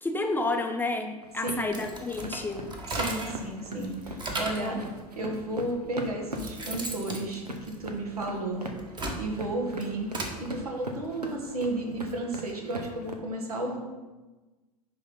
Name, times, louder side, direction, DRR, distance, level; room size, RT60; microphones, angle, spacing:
voice 1, 0.0-2.7 4.6-4.8, left 2 dB, 10° left, 4 dB, 0.6 m, -30 dB
sound 1, 1.2-13.1, equal, 85° right, 0.9 m, -40 dB
voice 2, 1.4-1.8 3.0-4.8 5.2-8.7 9.2-10.1 10.4-13.8, right 2 dB, 70° right, 1 dB, 1.5 m, -33 dB
sound 2, 1.6-3.5 3.8-4.7 5.5-5.6 6.1-8.2 8.7-10.4, right 2 dB, 20° right, 1.3 m, -36 dB
9.9 x 3.6 x 5.3 m, 1.2 s
figure-of-eight pair, 80°, 20 cm